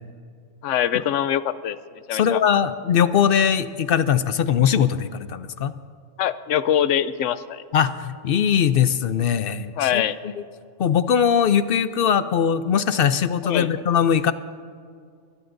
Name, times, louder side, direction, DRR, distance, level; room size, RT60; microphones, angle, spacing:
voice 1, 0.6-1.8 2.1-2.4 6.2-7.6 9.8-10.3 13.4-13.7, left 10 dB, 85° left, 14 dB, 0.9 m, -23 dB
voice 2, 2.1-5.7 7.7-10.0 10.8-14.3, left 8 dB, 60° left, 12 dB, 0.6 m, -20 dB
22.5 x 18.5 x 2.6 m, 2.2 s
omnidirectional pair, 1.2 m